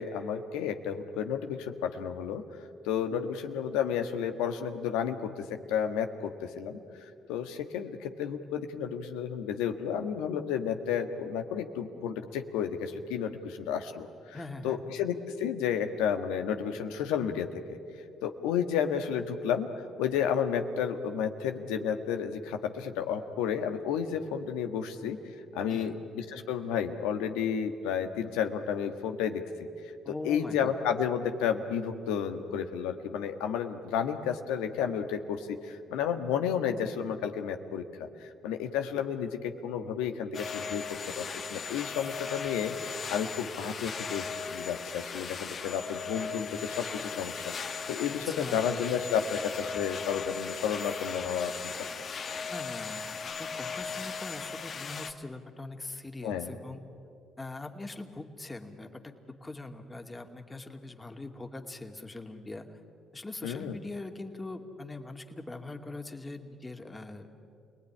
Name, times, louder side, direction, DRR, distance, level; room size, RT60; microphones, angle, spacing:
voice 1, 0.0-2.4 2.8-6.8 7.3-14.4 14.6-17.8 18.2-19.7 20.0-25.2 25.5-29.7 30.1-37.8 38.2-51.7 56.2-56.5 63.4-63.8, left 8 dB, 80° left, 6 dB, 1.5 m, -32 dB
voice 2, 14.3-14.8 25.7-26.0 30.0-30.7 48.2-48.8 52.5-56.8 57.4-59.1 59.4-62.8 63.1-67.3, left 2 dB, 20° left, 4 dB, 2.6 m, -42 dB
sound 1, 40.3-55.1, left 5 dB, 50° left, 1.5 m, -37 dB
28.5 x 19.5 x 10.0 m, 2.5 s
hypercardioid pair, 60°, 0 cm